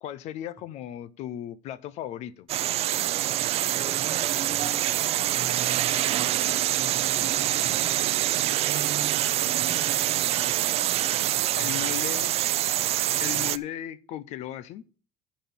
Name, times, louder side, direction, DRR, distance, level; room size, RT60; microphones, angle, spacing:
voice 1, 0.0-2.5 11.6-12.3 13.2-14.8, left 12 dB, 65° left, 0.7 m, -36 dB
sound 1, 2.5-13.6, right 13 dB, 60° right, 0.6 m, -25 dB
voice 2, 3.7-6.5 6.8-8.0 8.3-9.3 9.6-10.8 11.5-12.0, right 3 dB, 25° right, 1.5 m, -44 dB
11.0 x 4.2 x 7.0 m
supercardioid pair, 95°, 12 cm